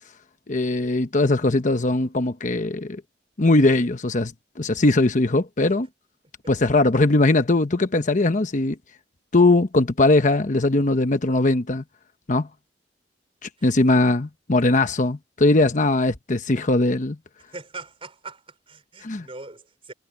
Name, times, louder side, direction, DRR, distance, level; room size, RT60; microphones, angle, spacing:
voice 1, 0.5-3.0 3.4-5.9 6.5-8.8 9.3-11.8 12.3-12.5 13.4-17.2 19.0-19.3, left 2 dB, 45° left, 1.0 m, -20 dB
voice 2, 17.5-19.9, right 3 dB, 30° right, 4.4 m, -41 dB
head